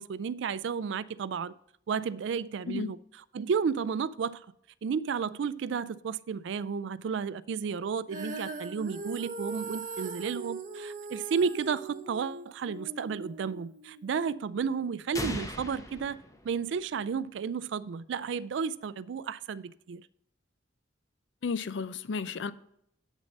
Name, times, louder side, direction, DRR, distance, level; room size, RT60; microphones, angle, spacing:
voice 1, 0.0-1.5 1.9-3.0 3.3-4.4 4.8-16.2 16.4-20.1, right 6 dB, 70° right, 0.3 m, -32 dB
Female singing, 8.1-14.3, right 3 dB, 45° right, 0.9 m, -40 dB
sound 1, 15.1-17.1, left 1 dB, 15° left, 0.8 m, -38 dB
voice 2, 21.4-22.5, left 5 dB, 70° left, 0.5 m, -33 dB
8.4 x 6.5 x 5.2 m
head